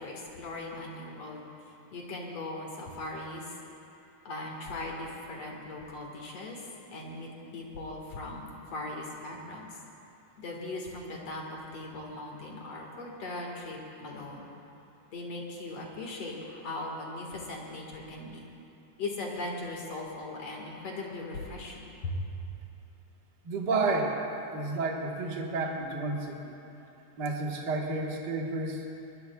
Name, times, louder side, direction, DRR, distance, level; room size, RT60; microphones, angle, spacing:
voice 1, 0.0-1.4 1.9-3.6 4.2-6.6 6.9-9.7 10.4-14.5 15.1-18.4 19.0-22.3, left 2 dB, 50° left, -1 dB, 2.3 m, -39 dB
voice 2, 23.4-24.3 24.5-26.5 27.2-28.8, right 3 dB, 75° right, -1 dB, 0.9 m, -31 dB
21.5 x 21.5 x 2.3 m, 2.8 s
omnidirectional pair, 4.4 m